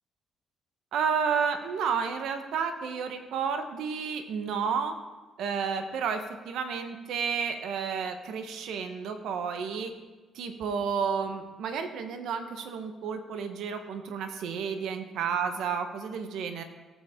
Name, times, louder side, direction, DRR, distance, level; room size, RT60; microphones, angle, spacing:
voice 1, 0.9-4.9 5.4-9.9 10.3-16.6, right 6 dB, 80° right, 7 dB, 1.0 m, -31 dB
17.5 x 7.2 x 3.7 m, 1.3 s
cardioid pair, 90°, 0 cm